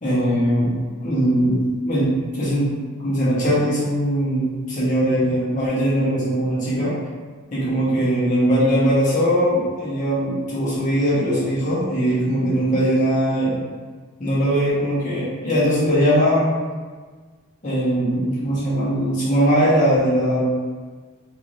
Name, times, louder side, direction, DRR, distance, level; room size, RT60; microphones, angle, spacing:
voice 1, 0.0-2.7 3.0-6.9 7.5-13.6 14.2-16.6 17.6-20.5, equal, 35° left, -10 dB, 0.9 m, -20 dB
3.1 x 2.7 x 2.5 m, 1.5 s
head